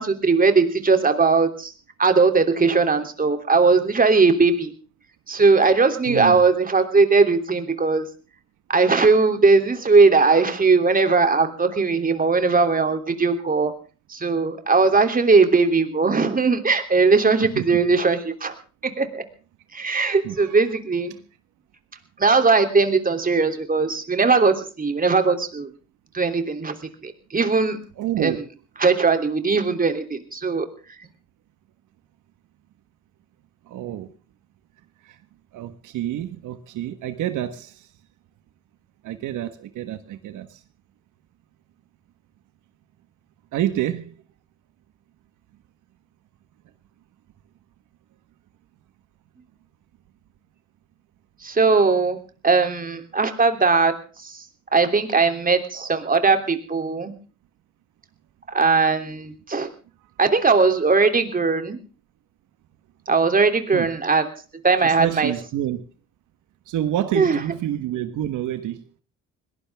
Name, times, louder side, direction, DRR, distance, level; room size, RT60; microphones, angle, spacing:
voice 1, 0.0-1.7 2.0-4.7 5.3-8.1 8.7-13.7 14.1-18.5 18.8-19.2 19.7-21.1 22.2-25.7 26.1-26.7 27.0-27.8 28.2-28.4 28.8-30.7 51.4-54.0 54.2-54.4 54.7-57.1 58.5-59.7 60.2-61.8 63.1-64.3 64.6-65.3 67.1-67.4, right 4 dB, 30° right, 7 dB, 3.2 m, -19 dB
voice 2, 6.1-6.4 17.4-17.6 20.2-20.6 28.0-28.4 33.6-34.1 35.0-35.2 35.5-37.9 39.0-40.6 43.5-44.1 63.7-63.9 64.8-65.8 66.7-68.8, right 12 dB, 85° right, 10 dB, 1.6 m, -28 dB
21.5 x 18.5 x 3.6 m, 0.36 s
cardioid pair, 90°, 30 cm